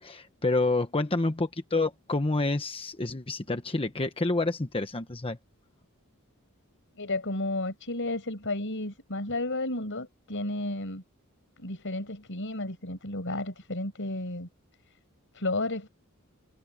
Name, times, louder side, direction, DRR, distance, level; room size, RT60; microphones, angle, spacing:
voice 1, 0.0-5.4, left 2 dB, 25° left, 1.1 m, -28 dB
voice 2, 7.0-11.0 11.6-14.5 15.3-15.9, left 2 dB, 60° left, 5.9 m, -32 dB
head